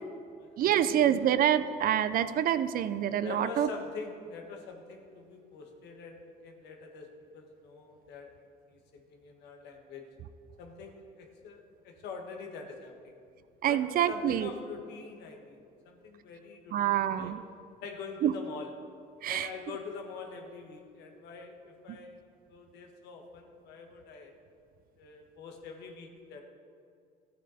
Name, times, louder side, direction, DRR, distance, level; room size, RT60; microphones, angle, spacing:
voice 1, 0.0-1.3 3.2-7.1 7.3-8.3 8.7-10.1 10.6-13.2 13.7-13.8 14.1-17.3 17.8-18.7 19.3-22.2 22.5-24.3 25.0-26.4, left 4 dB, 80° left, 3 dB, 1.5 m, -45 dB
voice 2, 0.6-3.7 13.6-14.5 16.7-17.4 18.2-18.3 19.2-19.5, right 10 dB, 60° right, 13 dB, 0.5 m, -26 dB
13.5 x 8.4 x 4.2 m, 2.3 s
cardioid pair, 110°, 17 cm